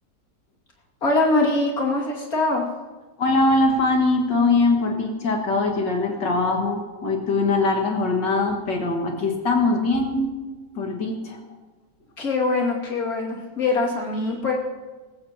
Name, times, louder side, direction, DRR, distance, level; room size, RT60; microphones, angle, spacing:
voice 1, 1.0-2.6 12.2-14.5, left 2 dB, 55° left, -2 dB, 2.9 m, -23 dB
voice 2, 3.2-10.3 10.8-11.4, left 3 dB, 80° left, 1 dB, 2.6 m, -22 dB
20.5 x 15.5 x 2.9 m, 1.3 s
omnidirectional pair, 1.9 m